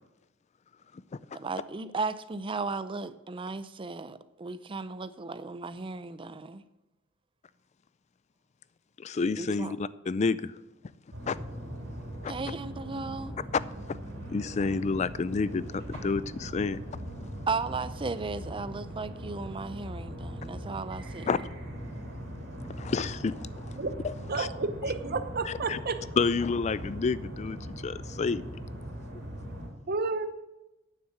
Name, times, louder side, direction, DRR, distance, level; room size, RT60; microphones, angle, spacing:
voice 1, 1.3-6.6 9.4-9.7 12.3-13.3 17.5-21.3, right 4 dB, 25° right, 0.5 m, -35 dB
voice 2, 9.0-10.5 11.3-11.4 12.2-12.3 13.5-13.6 13.9-14.0 14.3-16.8 21.3-21.4 22.7-23.6 24.0-24.5 25.5-25.8 26.2-28.4, left 4 dB, 35° left, 0.4 m, -29 dB
sound 1, 11.1-29.7, equal, 85° right, 3.0 m, -40 dB
voice 3, 24.3-26.0 29.9-30.3, right 3 dB, 50° right, 0.8 m, -31 dB
9.3 x 7.3 x 7.3 m
head